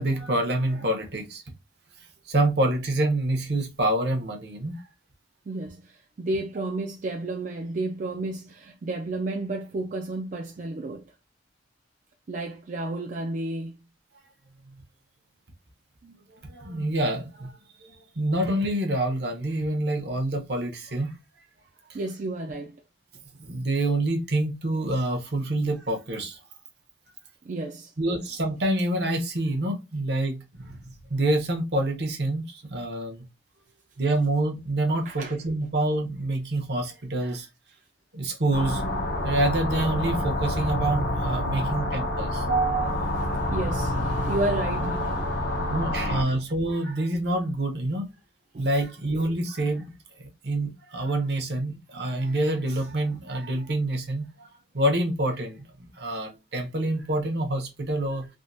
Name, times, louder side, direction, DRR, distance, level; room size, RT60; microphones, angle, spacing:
voice 1, 0.0-1.4 2.3-4.8 16.4-21.1 21.9-22.0 23.4-26.4 28.0-33.3 34.0-37.5 38.1-38.8 39.2-42.9 45.7-48.1 48.6-49.9 50.2-54.5 54.7-58.3, right 1 dB, 65° right, 0.9 m, -27 dB
voice 2, 5.5-11.1 12.3-13.8 16.0-16.1 21.9-22.8 27.4-27.9 35.1-35.4 41.5-42.1 42.4-46.4 48.5-48.7, right 2 dB, 45° right, 0.4 m, -32 dB
sound 1, 38.5-46.2, left 1 dB, 70° left, 0.7 m, -27 dB
3.5 x 2.2 x 2.5 m
head